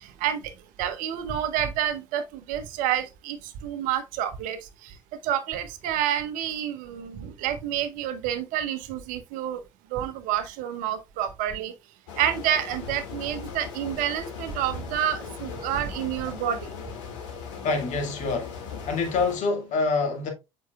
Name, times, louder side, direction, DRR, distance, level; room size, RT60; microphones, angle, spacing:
voice 1, 0.8-3.4 3.6-4.6 5.2-9.6 9.9-11.7 12.2-16.6, right 10 dB, 55° right, 0.9 m, -28 dB
sound 1, 12.1-19.4, left 6 dB, 65° left, 2.0 m, -39 dB
voice 2, 17.6-18.5 18.9-20.3, left 4 dB, 45° left, 2.1 m, -26 dB
7.5 x 5.6 x 2.3 m
figure-of-eight pair, 65°, 17 cm